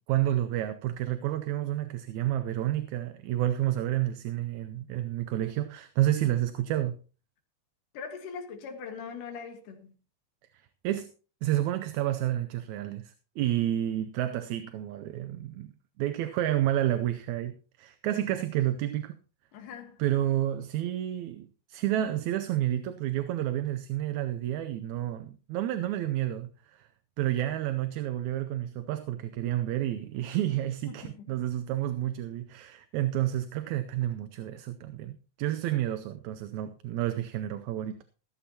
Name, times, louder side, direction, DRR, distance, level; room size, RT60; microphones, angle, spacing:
voice 1, 0.0-7.0 10.8-11.1 11.4-19.2 20.0-26.5 26.8-26.9 27.2-38.0, right 13 dB, 75° right, 2.0 m, -30 dB
voice 2, 7.9-9.9 13.4-13.5 19.5-20.0 30.9-31.3, left 6 dB, 85° left, 3.2 m, -41 dB
15.0 x 14.5 x 2.8 m
omnidirectional pair, 3.6 m